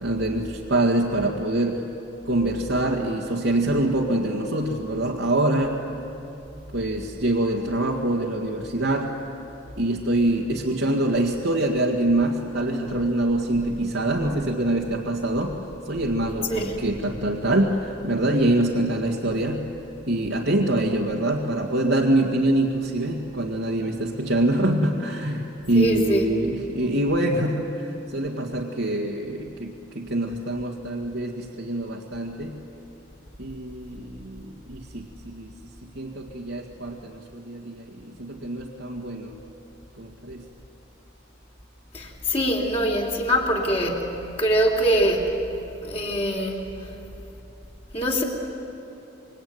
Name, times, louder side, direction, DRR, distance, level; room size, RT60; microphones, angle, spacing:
voice 1, 0.0-1.9 2.2-5.8 6.7-9.2 9.8-15.6 15.8-19.7 20.1-32.6 33.4-39.4 40.0-40.4, right 1 dB, 80° right, -2 dB, 2.0 m, -25 dB
voice 2, 25.7-26.3 41.9-45.5 45.8-46.9 47.9-48.2, equal, 30° left, 0 dB, 3.1 m, -24 dB
27.0 x 23.0 x 9.5 m, 2.9 s
head